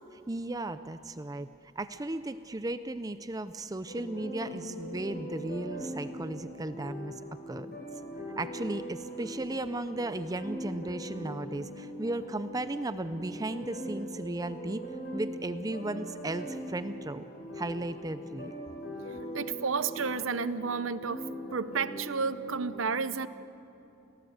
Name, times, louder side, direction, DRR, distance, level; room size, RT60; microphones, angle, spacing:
voice 1, 0.3-1.5 1.8-7.2 7.5-7.7 8.4-14.8 15.1-17.2 17.5-18.5, right 2 dB, 15° right, 12 dB, 0.5 m, -35 dB
sound 1, 3.9-22.7, equal, 50° left, 5.0 m, -41 dB
voice 2, 19.3-23.3, right 5 dB, 75° right, 14 dB, 0.8 m, -31 dB
29.5 x 18.5 x 8.1 m, 2.8 s
head